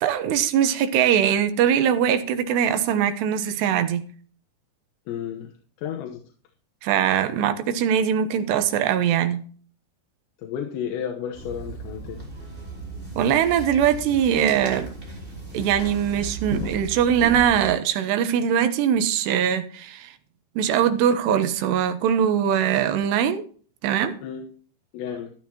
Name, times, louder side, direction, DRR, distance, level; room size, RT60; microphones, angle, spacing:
voice 1, 0.0-4.0 6.8-9.4 13.2-14.9 15.5-20.1 20.6-23.4 23.8-24.2, right 9 dB, 75° right, 3.0 m, -21 dB
voice 2, 5.1-5.5 5.8-6.2 10.4-12.3 24.2-24.4 24.9-25.3, left 8 dB, 80° left, 3.4 m, -32 dB
sound 1, 11.3-17.7, right 3 dB, 10° right, 4.3 m, -35 dB
14.0 x 11.5 x 2.9 m
omnidirectional pair, 5.2 m